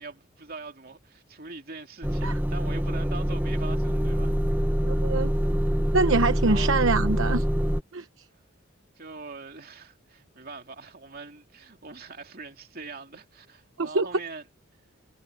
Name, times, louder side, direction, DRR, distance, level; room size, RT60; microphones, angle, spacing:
voice 1, 0.0-4.4 6.5-6.7 9.0-14.4, right 3 dB, 45° right, 2.8 m, -42 dB
Motor vehicle (road) / Engine starting / Idling, 2.0-7.8, equal, 10° right, 1.3 m, -25 dB
voice 2, 4.8-5.3 5.9-7.5 7.9-8.1 13.8-14.1, right 3 dB, 75° right, 1.0 m, -24 dB
head